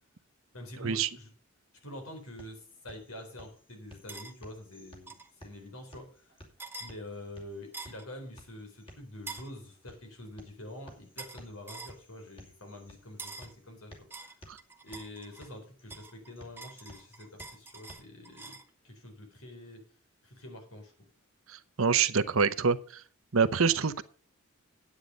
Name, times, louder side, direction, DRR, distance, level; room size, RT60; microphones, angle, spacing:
voice 1, 0.5-1.3 1.8-6.4 6.8-14.3 14.8-18.6 18.8-19.9 20.2-20.9, left 1 dB, 80° left, 4 dB, 4.1 m, -46 dB
sound 1, 1.9-17.9, equal, 25° left, 2.5 m, -56 dB
sound 2, 4.1-4.3 5.1-5.3 6.6-6.9 7.7-8.1 9.3-9.5 11.2-11.4 11.7-12.0 13.2-13.5 14.1-15.5 15.9-18.7, right 3 dB, 10° right, 0.9 m, -45 dB
voice 2, 21.5-23.0 23.3-24.0, right 5 dB, 75° right, 13 dB, 0.8 m, -26 dB
9.9 x 8.9 x 5.2 m, 0.41 s
head